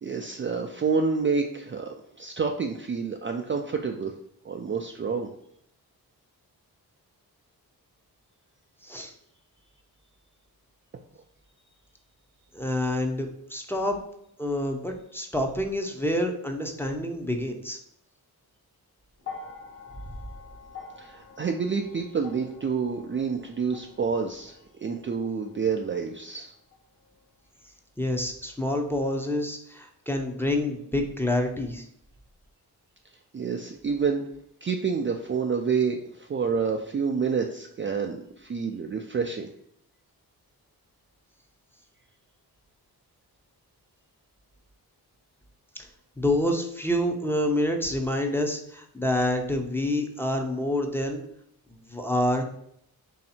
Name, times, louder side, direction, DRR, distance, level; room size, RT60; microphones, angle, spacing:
voice 1, 0.0-4.1 4.4-5.3 21.0-24.6 24.8-26.5 33.3-34.2 34.6-39.5, right 5 dB, 30° right, 3 dB, 0.4 m, -28 dB
voice 2, 8.8-9.1 12.5-14.0 14.4-17.8 28.0-31.8 46.2-51.2 51.7-52.4, left 1 dB, 5° left, 3 dB, 0.7 m, -27 dB
sound 1, 19.2-27.5 28.6-28.7, left 5 dB, 35° left, 1.1 m, -47 dB
3.2 x 2.8 x 4.2 m, 0.71 s
cardioid pair, 60°, 39 cm